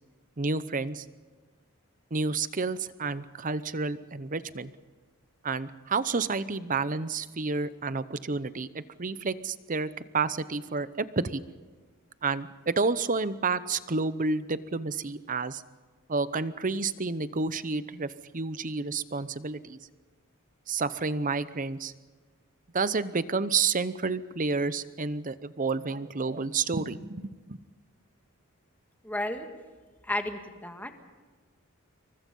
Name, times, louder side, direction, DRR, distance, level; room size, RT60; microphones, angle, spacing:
voice 1, 0.4-1.0 2.1-4.7 5.4-9.9 10.1-11.4 12.2-15.6 16.1-19.8 20.7-21.9 22.7-27.6, right 4 dB, 35° right, 14 dB, 0.8 m, -30 dB
voice 2, 29.0-29.5 30.0-30.9, left 1 dB, 10° left, 5 dB, 1.8 m, -32 dB
27.5 x 23.5 x 5.5 m, 1.4 s
head